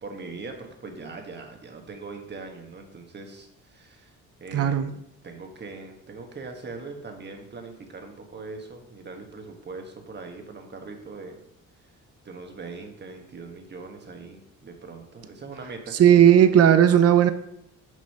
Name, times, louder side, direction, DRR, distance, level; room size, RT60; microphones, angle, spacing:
voice 1, 0.0-4.1 4.4-4.7 5.2-11.4 11.8-11.9 12.2-16.0, right 3 dB, 35° right, 4 dB, 1.3 m, -41 dB
voice 2, 4.5-4.9 16.0-17.3, right 10 dB, 50° right, 11 dB, 0.6 m, -16 dB
6.3 x 5.4 x 5.5 m, 0.79 s
cardioid pair, 125°, 32 cm